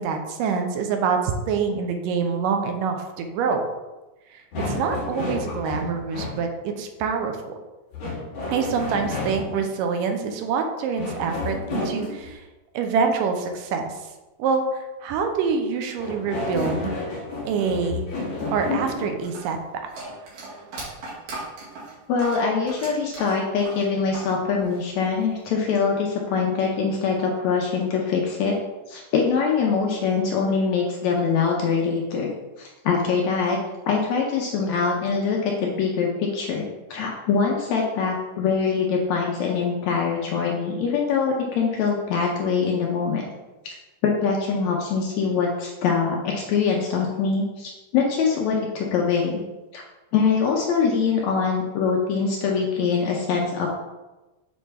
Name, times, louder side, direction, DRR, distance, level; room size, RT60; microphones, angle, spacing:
voice 1, 0.0-3.6 4.3-7.5 8.5-12.4 12.7-13.9 14.4-18.1 18.5-19.6, right 5 dB, 90° right, 5 dB, 2.3 m, -26 dB
sound 1, 4.5-6.4 7.9-9.7 11.0-12.3 16.0-19.2, left 2 dB, 55° left, 2.2 m, -30 dB
sound 2, 19.2-24.3 24.6-25.5, right 2 dB, 60° right, 3.0 m, -38 dB
voice 2, 22.1-28.5 28.9-32.3 32.6-33.6 33.9-36.6 36.9-43.3 43.6-43.7 44.0-49.4 49.7-49.8 50.1-53.7, left 5 dB, 75° left, -1 dB, 1.7 m, -23 dB
7.8 x 4.3 x 3.4 m, 1.1 s
omnidirectional pair, 3.9 m